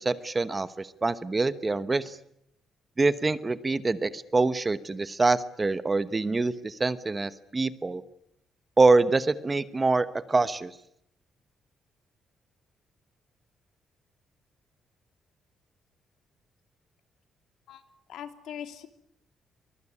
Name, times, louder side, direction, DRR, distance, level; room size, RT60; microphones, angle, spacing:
voice 1, 0.0-2.2 3.0-8.0 8.8-10.7, right 3 dB, 20° right, 14 dB, 1.1 m, -25 dB
voice 2, 18.1-18.9, left 9 dB, 80° left, 8 dB, 3.0 m, -40 dB
24.0 x 22.5 x 9.8 m, 0.74 s
cardioid pair, 150°, 0 cm